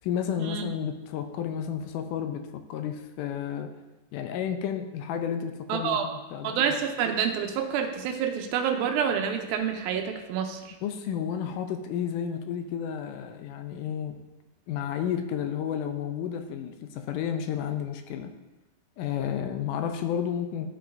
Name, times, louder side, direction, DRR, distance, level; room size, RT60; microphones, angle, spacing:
voice 1, 0.0-3.7 4.1-6.6 10.8-14.2 14.7-18.3 19.0-20.7, left 8 dB, 80° left, 7 dB, 1.9 m, -31 dB
voice 2, 5.7-6.1 6.4-10.8, right 7 dB, 85° right, 4 dB, 2.5 m, -28 dB
13.5 x 5.7 x 2.6 m, 1.1 s
omnidirectional pair, 4.2 m